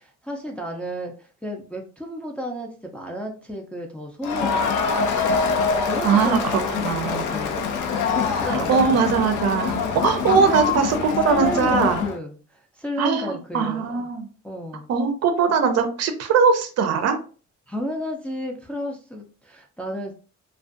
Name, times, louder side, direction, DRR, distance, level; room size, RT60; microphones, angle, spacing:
voice 1, 0.0-4.7 5.9-7.9 8.1-9.0 10.4-10.7 11.2-14.1 14.4-14.9 17.7-20.1, right 1 dB, 5° left, 0 dB, 0.4 m, -32 dB
Crowd, 4.2-12.2, left 5 dB, 85° left, 0.5 m, -24 dB
voice 2, 6.0-6.4 6.8-7.3 8.5-12.0 13.0-14.3 14.9-17.2, right 5 dB, 55° right, 8 dB, 0.5 m, -21 dB
2.4 x 2.2 x 2.5 m, 0.38 s
cardioid pair, 90°, 30 cm